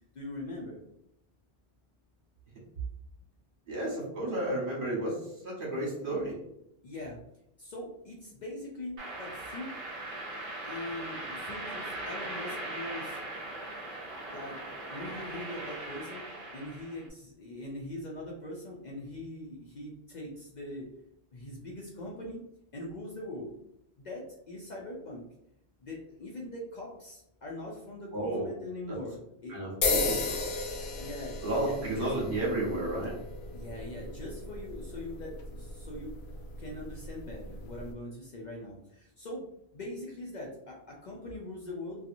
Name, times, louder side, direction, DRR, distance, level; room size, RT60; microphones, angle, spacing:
voice 1, 0.1-0.8 6.8-7.2 7.6-9.7 10.6-13.2 14.3-14.6 14.9-16.2 16.5-20.9 21.3-22.4 22.7-23.5 24.0-25.2 25.8-29.6 29.9-30.3 31.0-31.4 31.6-32.2 33.5-36.1 36.6-39.5 39.7-42.1, left 1 dB, 55° left, -3 dB, 0.5 m, -42 dB
voice 2, 3.7-6.4 28.1-28.5 28.9-29.0 29.5-30.4 31.4-33.2, right 1 dB, 55° right, -5 dB, 1.2 m, -32 dB
sound 1, 9.0-17.1, right 2 dB, 40° right, 0.6 m, -40 dB
sound 2, 29.8-37.9, left 3 dB, 85° left, 0.9 m, -35 dB
2.8 x 2.3 x 2.5 m, 0.80 s
omnidirectional pair, 1.1 m